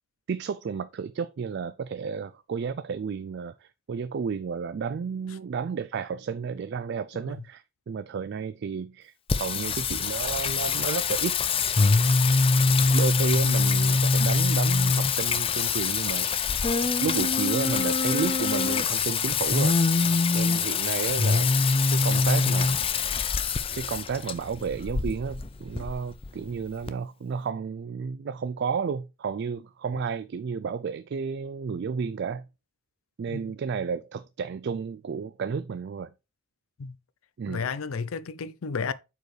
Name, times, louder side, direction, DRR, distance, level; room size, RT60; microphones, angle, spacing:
voice 1, 0.3-9.1 9.4-11.4 12.9-16.3 17.0-19.7 20.3-21.5 21.9-22.9 23.7-32.5 33.2-36.1 37.4-37.6, right 6 dB, 55° right, 0.3 m, -32 dB
Singing, 9.3-26.9, left 4 dB, 25° left, 0.5 m, -24 dB
voice 2, 37.5-38.9, left 5 dB, 80° left, 0.5 m, -32 dB
7.8 x 4.7 x 3.2 m
head